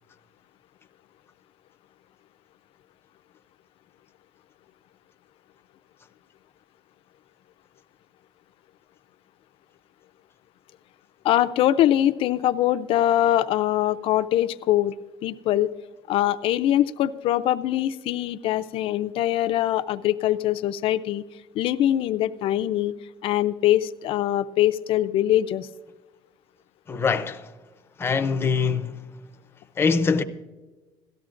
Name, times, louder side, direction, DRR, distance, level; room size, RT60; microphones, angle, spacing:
voice 1, 11.2-14.9 15.2-15.7 16.1-21.2 21.5-22.9 23.2-25.7, left 12 dB, 65° left, 0.5 m, -23 dB
voice 2, 26.9-27.5 28.0-29.1 29.8-30.2, left 5 dB, 25° left, 0.7 m, -23 dB
17.5 x 13.5 x 2.5 m
cardioid pair, 135°, 10 cm